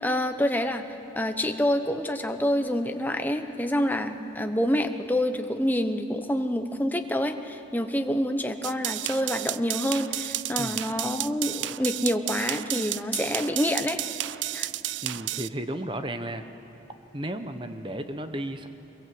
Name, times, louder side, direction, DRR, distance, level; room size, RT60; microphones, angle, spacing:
voice 1, 0.0-14.0 14.5-14.7, left 1 dB, 10° left, 6 dB, 0.9 m, -27 dB
sound 1, 8.6-15.5, right 14 dB, 80° right, 0.4 m, -32 dB
voice 2, 15.0-16.4 17.1-18.7, right 1 dB, 25° right, 8 dB, 1.1 m, -33 dB
24.0 x 22.5 x 7.9 m, 2.9 s
head